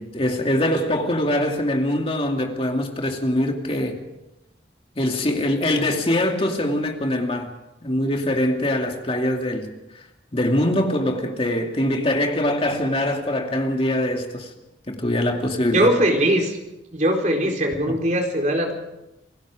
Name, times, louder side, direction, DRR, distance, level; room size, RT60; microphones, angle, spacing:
voice 1, 0.0-4.0 5.0-7.5 7.8-9.7 10.3-14.5 14.9-15.9 17.9-18.0, left 1 dB, 30° left, 2.5 m, -23 dB
voice 2, 15.7-16.6 16.9-18.7, equal, 40° right, 4.3 m, -20 dB
27.5 x 18.5 x 5.1 m
head